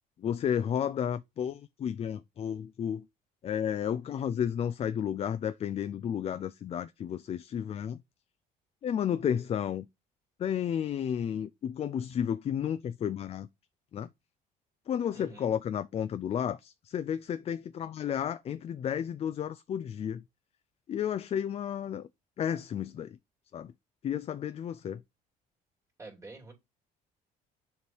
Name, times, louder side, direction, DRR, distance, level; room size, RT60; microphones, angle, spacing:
voice 1, 0.2-3.0 3.4-8.0 8.8-9.9 10.4-13.5 13.9-14.1 14.9-20.2 20.9-22.1 22.4-23.2 23.5-23.7 24.0-25.0, left 9 dB, 35° left, 0.4 m, -32 dB
voice 2, 15.1-15.5 26.0-26.5, right 2 dB, 15° right, 2.8 m, -47 dB
6.8 x 3.2 x 4.4 m
cardioid pair, 110°, 17 cm